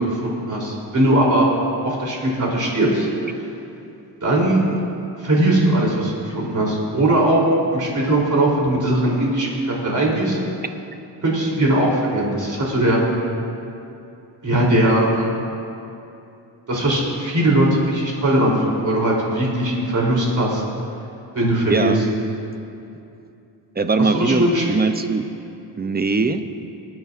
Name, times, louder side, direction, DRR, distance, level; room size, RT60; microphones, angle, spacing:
voice 1, 0.0-1.5 1.8-3.1 4.2-4.6 5.2-7.4 7.7-10.4 11.2-13.0 14.4-15.3 16.7-20.6 21.3-22.0 24.0-24.8, right 1 dB, 45° right, -3 dB, 3.3 m, -19 dB
voice 2, 21.7-22.0 23.8-25.3 25.8-26.4, right 4 dB, 20° right, 8 dB, 0.6 m, -21 dB
24.0 x 9.4 x 2.5 m, 2.7 s
cardioid pair, 105°, 43 cm